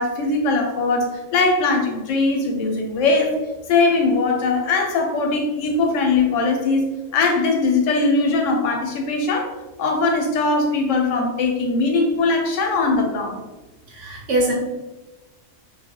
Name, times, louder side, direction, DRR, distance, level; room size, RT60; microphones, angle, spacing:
voice 1, 0.0-3.3 3.7-9.5 9.8-13.4, left 3 dB, 85° left, 3 dB, 0.9 m, -20 dB
voice 2, 13.9-14.5, right 1 dB, 75° right, -2 dB, 1.1 m, -22 dB
2.6 x 2.2 x 2.8 m, 1.1 s
omnidirectional pair, 1.3 m